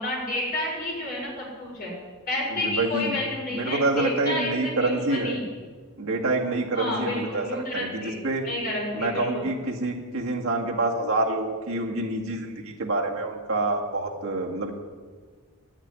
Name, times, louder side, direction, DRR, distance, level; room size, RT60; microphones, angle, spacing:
voice 1, 0.0-1.9 2.3-5.4 6.7-9.4, left 1 dB, 40° left, -3 dB, 5.2 m, -30 dB
voice 2, 2.5-3.2 3.5-5.4 6.0-8.5 8.9-14.7, right 2 dB, 65° right, 0 dB, 1.9 m, -27 dB
12.0 x 7.2 x 9.5 m, 1.5 s
head